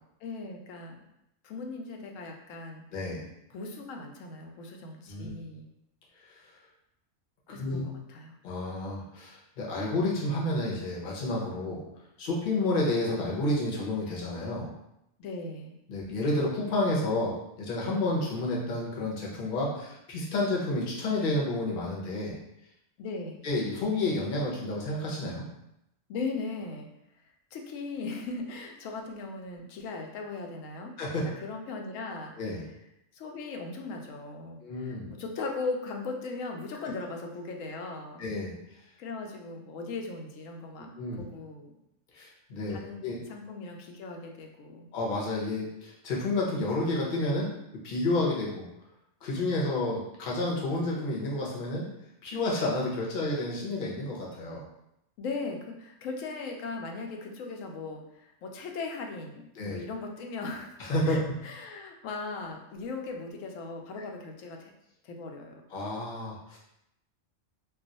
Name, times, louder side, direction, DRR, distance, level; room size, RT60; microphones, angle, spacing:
voice 1, 0.2-1.0 1.4-2.8 3.5-5.6 7.5-8.4 15.2-15.7 23.0-23.4 26.1-26.9 27.5-30.9 31.2-32.3 33.1-38.2 39.0-41.7 42.7-44.9 55.2-60.7 61.1-64.7 65.0-65.6, left 3 dB, 85° left, 2 dB, 0.9 m, -38 dB
voice 2, 2.9-3.2 5.1-5.3 6.3-6.5 7.5-7.8 8.4-11.8 12.2-14.7 15.9-22.4 23.4-25.4 31.0-31.2 32.4-32.6 34.6-35.1 38.2-38.5 40.8-41.2 42.1-43.2 44.9-47.5 47.8-48.7 49.2-51.9 52.2-54.6 59.6-59.8 60.8-61.2 65.7-66.6, left 2 dB, 45° left, -3 dB, 0.8 m, -30 dB
2.3 x 2.3 x 3.9 m, 0.82 s
omnidirectional pair, 1.3 m